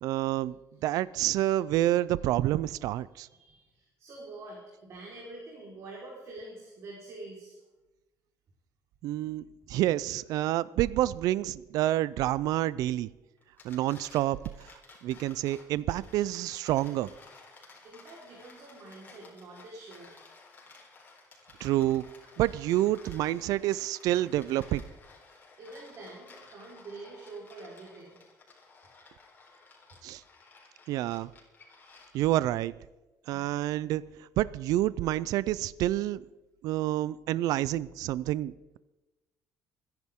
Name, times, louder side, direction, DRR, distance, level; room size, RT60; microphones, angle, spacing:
voice 1, 0.0-0.6 0.8-3.3 9.0-13.1 13.6-14.7 15.0-17.1 21.6-22.1 22.4-24.8 30.0-30.2 30.9-31.3 32.1-32.7 33.3-34.0 34.4-36.2 36.6-38.8, right 14 dB, 75° right, 0.4 m, -28 dB
voice 2, 3.1-7.6 17.5-20.1 20.7-20.8 25.3-28.2 33.2-33.7, right 2 dB, 50° right, 4.3 m, -46 dB
sound 1, 13.4-32.4, left 3 dB, 30° left, 3.9 m, -55 dB
27.5 x 10.5 x 3.7 m
cardioid pair, 130°, 6 cm